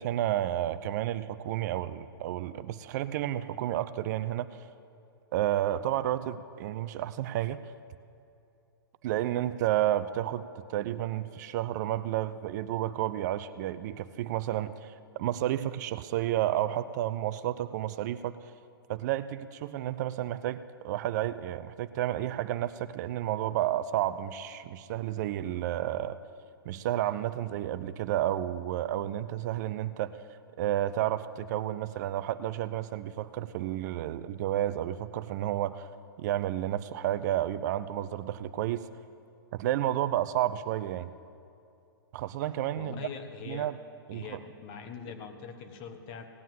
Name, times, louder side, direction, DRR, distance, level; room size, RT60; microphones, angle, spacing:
voice 1, 0.0-4.5 5.3-7.6 9.0-18.3 18.9-26.2 26.7-30.1 30.6-35.9 36.2-38.8 39.5-41.1 42.1-43.0 43.5-43.7 44.1-44.4, right 13 dB, 45° right, 13 dB, 0.5 m, -31 dB
voice 2, 42.8-43.7 44.1-46.2, left 6 dB, 35° left, 7 dB, 1.5 m, -42 dB
17.0 x 9.1 x 7.5 m, 2.7 s
hypercardioid pair, 115°, 13 cm